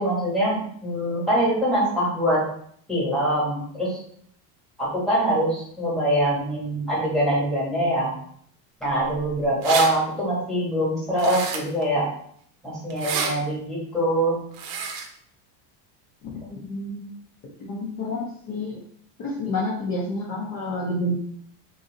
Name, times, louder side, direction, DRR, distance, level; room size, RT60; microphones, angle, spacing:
voice 1, 0.0-2.4 2.9-4.0 4.8-8.1 8.8-12.1 12.6-14.4, right 1 dB, ahead, -6 dB, 1.2 m, -23 dB
sound 1, 9.1-9.2 9.4-9.9 11.2-11.8 12.9-13.3 14.5-15.1, right 5 dB, 80° right, 0.8 m, -28 dB
voice 2, 16.5-17.1 17.6-18.8 19.2-21.2, left 1 dB, 35° left, -4 dB, 0.6 m, -29 dB
2.9 x 2.7 x 3.7 m, 0.63 s
cardioid pair, 170°, 47 cm